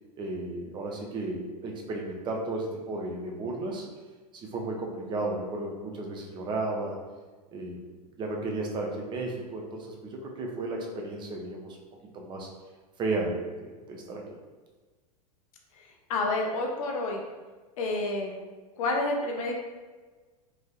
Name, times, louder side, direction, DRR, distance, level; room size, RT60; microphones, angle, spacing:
voice 1, 0.2-3.9 4.3-7.0 7.5-7.8 8.2-11.8 12.1-12.5 13.0-14.2, right 2 dB, 25° right, 0 dB, 0.5 m, -33 dB
voice 2, 16.1-17.2 17.8-18.4 18.8-19.5, left 2 dB, 55° left, 1 dB, 0.6 m, -29 dB
3.1 x 2.5 x 2.3 m, 1.3 s
figure-of-eight pair, 90°, 20 cm